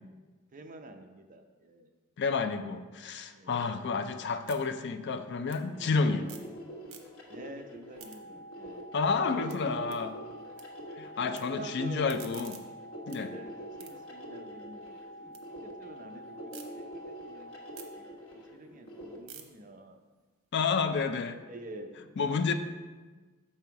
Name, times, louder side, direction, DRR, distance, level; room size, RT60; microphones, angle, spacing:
voice 1, 0.5-1.9 3.3-3.7 7.3-9.4 11.2-12.1 13.2-13.5 13.8-15.0 15.6-17.5 17.9-18.1 18.3-20.0 21.5-22.5, right 2 dB, 40° right, 5 dB, 0.6 m, -47 dB
voice 2, 2.2-6.3 8.9-10.2 11.0-12.6 13.1-13.3 20.5-21.4 22.2-22.5, left 4 dB, 55° left, 9 dB, 0.4 m, -30 dB
sound 1, 3.6-6.6 6.8-7.4 7.8-10.6 10.9-11.4 11.8-15.4 15.8-16.7 17.1-21.3, right 8 dB, 85° right, 0.8 m, -54 dB
sound 2, 5.5-19.2, equal, 80° left, 1.4 m, -46 dB
sound 3, 8.0-18.0, equal, 10° right, 1.4 m, -48 dB
6.7 x 5.5 x 4.6 m, 1.3 s
head